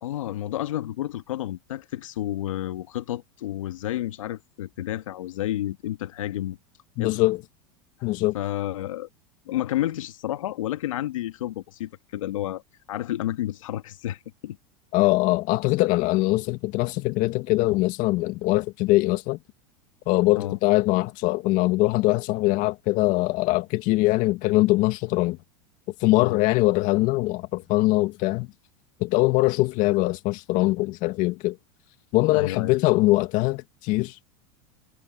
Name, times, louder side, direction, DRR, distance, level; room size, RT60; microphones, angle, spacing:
voice 1, 0.0-6.6 7.0-7.2 8.3-9.1 9.5-12.6 12.9-14.6 20.3-20.6 26.2-26.4 32.3-32.7, left 13 dB, 85° left, 2.0 m, -30 dB
voice 2, 7.0-7.4 8.0-8.4 14.9-19.4 20.1-25.4 26.0-28.5 29.0-31.6 32.1-34.1, left 20 dB, 55° left, 2.0 m, -22 dB
hypercardioid pair, 110°, 16 cm